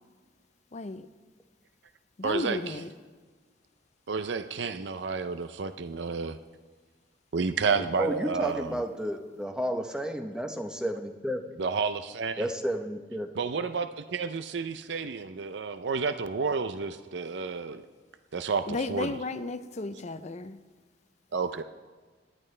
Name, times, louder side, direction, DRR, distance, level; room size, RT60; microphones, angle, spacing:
voice 1, 0.7-1.0 2.2-2.9 7.8-7.9 18.7-20.6, left 3 dB, 40° left, 0.5 m, -34 dB
voice 2, 2.2-2.8 4.1-6.4 7.3-8.8 11.6-12.5 13.4-17.9 18.3-19.2 21.3-21.6, right 5 dB, 65° right, 0.5 m, -31 dB
voice 3, 8.0-11.4 12.4-13.3, equal, 5° right, 0.8 m, -32 dB
25.5 x 10.5 x 3.3 m
head